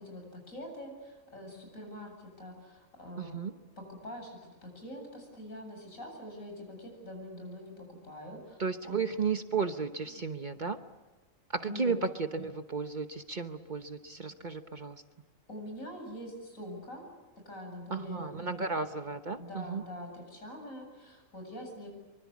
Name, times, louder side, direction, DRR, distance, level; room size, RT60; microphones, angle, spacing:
voice 1, 0.0-3.4 3.8-8.6 8.8-9.0 11.7-12.0 15.5-17.1 17.4-18.7 19.4-21.9, left 1 dB, 85° left, 2 dB, 8.4 m, -44 dB
voice 2, 3.2-3.5 8.6-10.8 11.5-15.0 17.9-19.8, right 5 dB, 40° right, 8 dB, 1.1 m, -34 dB
24.5 x 24.5 x 8.5 m, 1.2 s
omnidirectional pair, 1.4 m